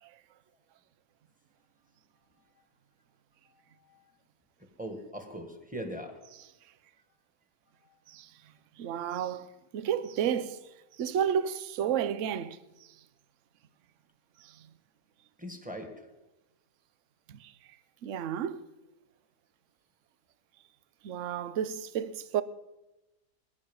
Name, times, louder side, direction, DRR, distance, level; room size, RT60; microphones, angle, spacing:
voice 1, 4.8-6.2 15.4-15.9, equal, 5° right, 1.7 m, -40 dB
voice 2, 8.8-10.6 11.0-12.6 14.4-14.7 17.3-17.5 18.0-18.6 21.0-22.4, right 9 dB, 60° right, 0.9 m, -32 dB
20.5 x 10.0 x 5.5 m
omnidirectional pair, 1.7 m